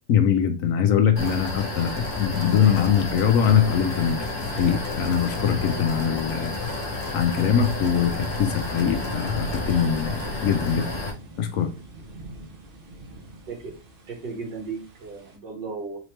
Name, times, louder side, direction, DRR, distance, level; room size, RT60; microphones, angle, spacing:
voice 1, 0.1-4.3 4.5-6.5 7.1-10.9 11.4-11.7, left 8 dB, 70° left, 6 dB, 0.8 m, -22 dB
sound 1, 1.2-11.1, left 2 dB, 50° left, 1.3 m, -31 dB
sound 2, 7.6-15.4, right 1 dB, 55° right, 0.6 m, -41 dB
voice 2, 14.1-16.0, right 4 dB, 75° right, 0 dB, 2.0 m, -35 dB
4.0 x 3.2 x 3.0 m, 0.32 s
omnidirectional pair, 1.9 m